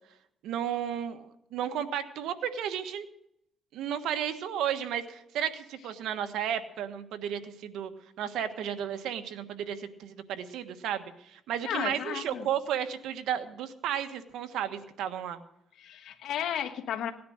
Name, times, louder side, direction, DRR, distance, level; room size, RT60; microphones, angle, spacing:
voice 1, 0.4-3.0 3.7-7.9 8.2-15.4, right 9 dB, 85° right, 9 dB, 1.3 m, -33 dB
voice 2, 11.6-12.5 15.8-17.1, left 10 dB, 75° left, 4 dB, 1.3 m, -33 dB
17.5 x 10.0 x 6.4 m, 0.77 s
cardioid pair, 90°, 0 cm